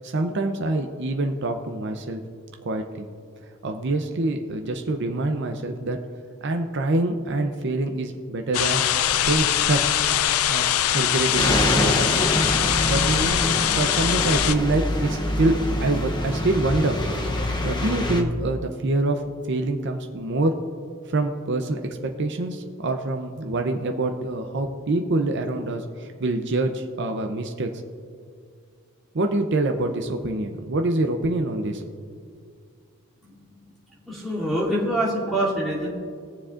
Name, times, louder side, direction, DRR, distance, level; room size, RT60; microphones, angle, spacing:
voice 1, 0.0-2.2 2.6-3.1 3.6-6.0 6.4-8.8 9.1-9.8 10.5-12.1 12.8-17.0 17.6-19.2 19.5-20.5 21.1-27.7 29.1-31.8, right 2 dB, 50° right, 4 dB, 0.6 m, -25 dB
sound 1, 8.5-14.5, left 11 dB, 75° left, 0.4 m, -22 dB
sound 2, 11.4-18.2, left 1 dB, 20° left, 0.7 m, -25 dB
voice 2, 34.0-35.9, right 1 dB, ahead, -10 dB, 2.8 m, -25 dB
21.0 x 7.1 x 2.5 m, 2.3 s
head